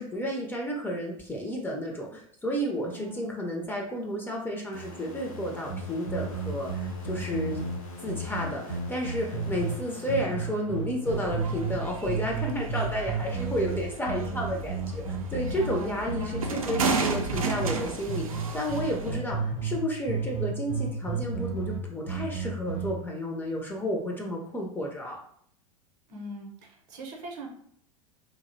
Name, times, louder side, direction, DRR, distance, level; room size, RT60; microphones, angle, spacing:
voice 1, 0.0-7.6 8.0-25.2, equal, 10° left, -1 dB, 0.4 m, -32 dB
voice 2, 2.9-3.3 15.6-16.8 26.1-27.5, equal, 45° right, 1 dB, 0.7 m, -41 dB
sound 1, 4.7-11.2, equal, 85° left, 0.7 m, -44 dB
sound 2, 5.7-9.8 10.1-11.8 12.1-17.8 18.1-19.8 20.1-22.9, right 4 dB, 50° left, 0.8 m, -32 dB
sound 3, 11.1-19.2, right 4 dB, 85° right, 0.4 m, -34 dB
2.6 x 2.0 x 2.5 m, 0.65 s
hypercardioid pair, 85°, 17 cm